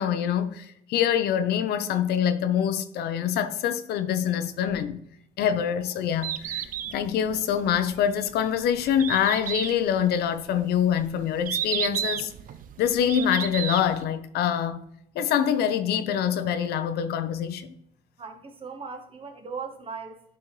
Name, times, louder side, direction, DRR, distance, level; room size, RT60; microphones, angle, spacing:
voice 1, 0.0-5.0 5.4-12.3 12.8-14.8 15.1-17.7, left 9 dB, 70° left, 0.7 m, -25 dB
Bird, 6.0-14.0, right 10 dB, 55° right, 0.5 m, -33 dB
voice 2, 18.2-20.2, right 5 dB, 35° right, 1.2 m, -38 dB
11.0 x 4.3 x 3.2 m
cardioid pair, 110°, 17 cm